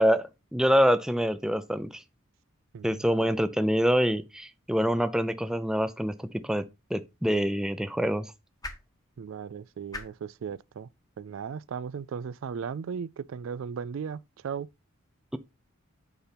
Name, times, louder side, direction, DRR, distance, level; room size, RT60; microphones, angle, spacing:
voice 1, 0.0-2.0 2.8-8.3, equal, 5° right, 0.4 m, -26 dB
voice 2, 2.7-3.3 9.2-10.9 11.2-14.7, right 6 dB, 65° right, 0.3 m, -37 dB
sound 1, 6.8-13.0, left 2 dB, 15° left, 1.0 m, -49 dB
8.1 x 5.6 x 3.4 m
head